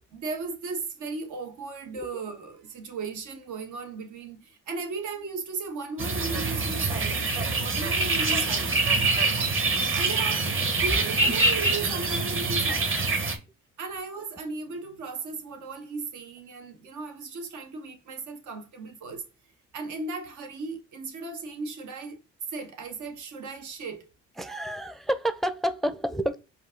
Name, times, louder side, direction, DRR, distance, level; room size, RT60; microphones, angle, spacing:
voice 1, 0.1-8.8 10.0-13.1 13.8-19.2 19.7-22.2 22.5-24.0, right 4 dB, 80° right, 1.2 m, -36 dB
sound 1, 6.0-13.4, right 3 dB, 45° right, 1.5 m, -25 dB
voice 2, 24.4-26.4, equal, ahead, 0.5 m, -29 dB
5.0 x 2.7 x 3.7 m
cardioid pair, 90°, 30 cm